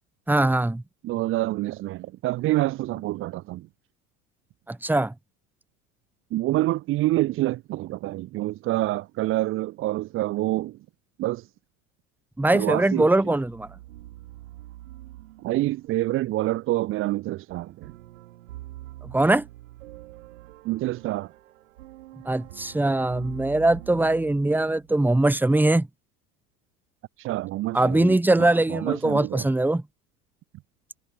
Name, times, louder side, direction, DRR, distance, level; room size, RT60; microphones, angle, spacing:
voice 1, 0.3-0.8 4.7-5.1 12.4-13.7 19.0-19.4 22.2-25.9 27.7-29.8, right 2 dB, 5° right, 1.2 m, -21 dB
voice 2, 1.0-3.7 6.3-10.8 11.2-11.5 12.5-13.1 15.4-17.9 20.6-21.3 27.2-29.4, right 17 dB, 30° right, 0.6 m, -27 dB
sound 1, 13.1-25.2, right 16 dB, 65° right, 5.0 m, -45 dB
figure-of-eight pair, 70°, 44 cm